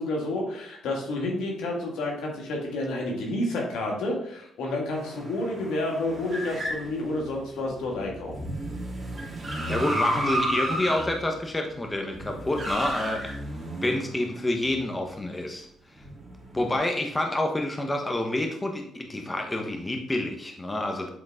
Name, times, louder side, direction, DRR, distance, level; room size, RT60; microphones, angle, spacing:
voice 1, 0.0-8.3, left 1 dB, 85° left, -1 dB, 1.9 m, -30 dB
sound 1, 4.9-14.9 15.9-16.8, right 1 dB, 25° right, 2.7 m, -33 dB
voice 2, 9.6-13.3 13.8-15.7 16.5-21.1, left 1 dB, 15° left, 3 dB, 1.0 m, -28 dB
8.0 x 3.7 x 3.7 m, 0.72 s
cardioid pair, 90°, 0 cm